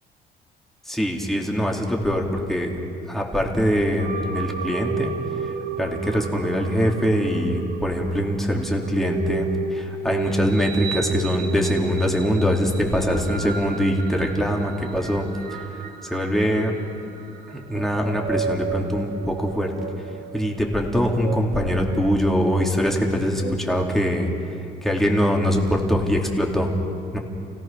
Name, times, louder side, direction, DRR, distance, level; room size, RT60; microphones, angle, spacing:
voice 1, 0.9-2.7 3.1-5.1 5.8-15.6 16.0-16.7 17.5-19.7 20.3-24.3 24.8-26.7 27.1-27.2, equal, ahead, -1 dB, 2.9 m, -23 dB
sound 1, 4.0-23.5, right 5 dB, 60° right, 1.7 m, -33 dB
29.5 x 17.5 x 6.0 m, 2.6 s
cardioid pair, 110°, 17 cm